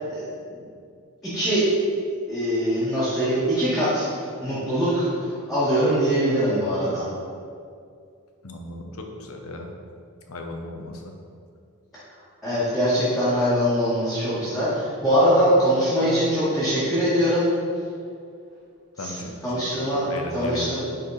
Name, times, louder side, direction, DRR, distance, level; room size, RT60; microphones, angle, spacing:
voice 1, 1.2-1.6 2.3-4.1 4.4-7.1 12.4-17.5 19.0-19.2 19.4-20.0 20.3-20.8, equal, ahead, -14 dB, 1.9 m, -22 dB
voice 2, 8.4-9.7 10.3-11.2 19.0-20.8, left 1 dB, 75° left, 3 dB, 1.0 m, -36 dB
10.0 x 4.3 x 4.3 m, 2.3 s
head